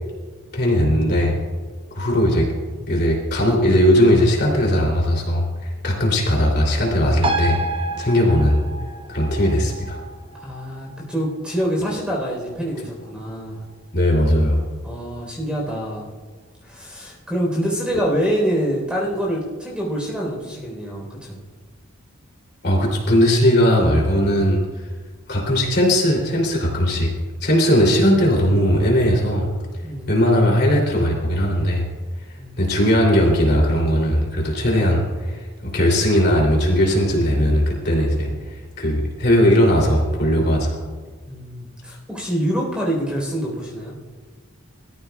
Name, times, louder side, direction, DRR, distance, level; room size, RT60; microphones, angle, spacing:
voice 1, 0.5-1.3 1.9-2.5 2.9-5.4 5.8-7.6 8.0-8.6 9.1-10.0 13.9-14.6 22.6-24.6 25.3-27.1 27.4-29.5 30.1-31.8 32.6-38.3 38.8-40.8, equal, 50° left, -2 dB, 3.2 m, -18 dB
sound 1, 7.2-14.2 14.5-14.6, right 2 dB, 25° right, 0.9 m, -31 dB
voice 2, 10.4-13.6 14.8-16.1 16.7-21.4 29.8-30.1 32.4-32.6 41.3-44.0, equal, 5° right, -2 dB, 4.1 m, -26 dB
22.5 x 14.0 x 2.4 m, 1.5 s
head